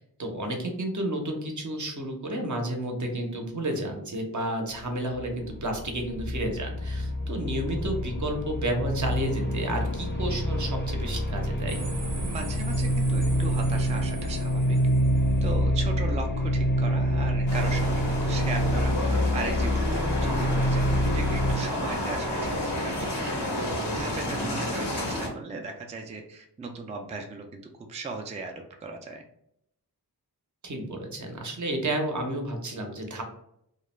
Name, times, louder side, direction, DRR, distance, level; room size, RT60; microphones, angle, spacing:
voice 1, 0.0-11.8 24.3-24.6 30.6-33.2, right 1 dB, 50° right, 3 dB, 0.7 m, -31 dB
sound 1, 5.1-21.5, equal, 30° left, 0.5 m, -26 dB
sound 2, 11.7-15.6, right 2 dB, 90° right, 0.7 m, -38 dB
voice 2, 12.2-14.8 15.4-23.3 23.8-29.2, right 3 dB, 20° right, 3 dB, 0.3 m, -37 dB
sound 3, 17.5-25.3, left 1 dB, 85° left, 0.9 m, -30 dB
2.3 x 2.1 x 3.0 m, 0.75 s
wide cardioid pair, 65°, 39 cm